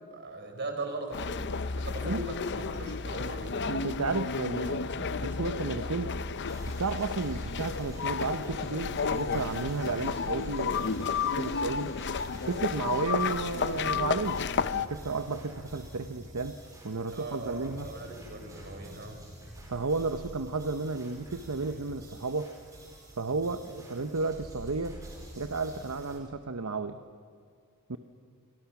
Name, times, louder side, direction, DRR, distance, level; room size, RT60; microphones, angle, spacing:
voice 1, 0.1-3.5 12.8-13.0 17.1-19.2, right 2 dB, 50° right, 4 dB, 4.5 m, -39 dB
sound 1, 1.1-14.9, left 5 dB, 55° left, 0.7 m, -32 dB
voice 2, 3.7-6.1 6.7-12.0 12.5-14.5 14.7-16.6 16.8-17.9 19.7-22.5 23.2-25.0 25.4-27.0 27.9-28.0, right 3 dB, 70° right, 9 dB, 0.9 m, -33 dB
sound 2, 6.5-26.2, equal, 15° right, 5.2 m, -47 dB
29.5 x 24.5 x 6.0 m, 2.2 s
head